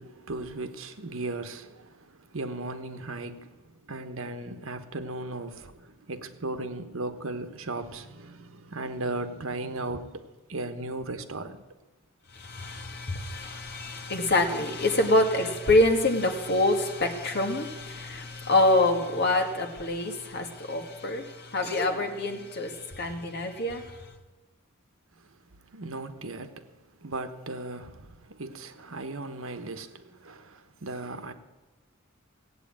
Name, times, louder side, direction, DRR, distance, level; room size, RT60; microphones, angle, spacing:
voice 1, 0.0-11.6 25.1-31.3, right 2 dB, 70° right, 1.2 m, -37 dB
voice 2, 12.4-23.8, left 2 dB, 50° left, 1.9 m, -26 dB
17.0 x 8.6 x 8.8 m
head